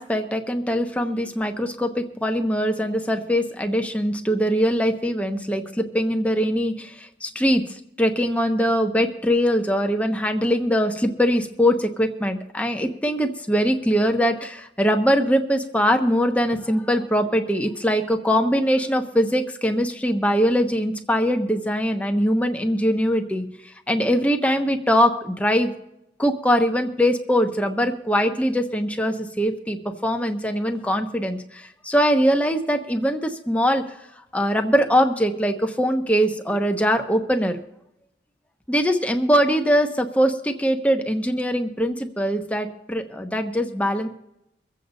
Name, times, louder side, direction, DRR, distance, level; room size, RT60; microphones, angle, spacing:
voice 1, 0.0-23.4 23.9-25.7 26.2-33.8 34.3-37.6 38.7-44.1, equal, 10° left, 4 dB, 1.0 m, -22 dB
24.0 x 8.1 x 4.1 m, 0.85 s
head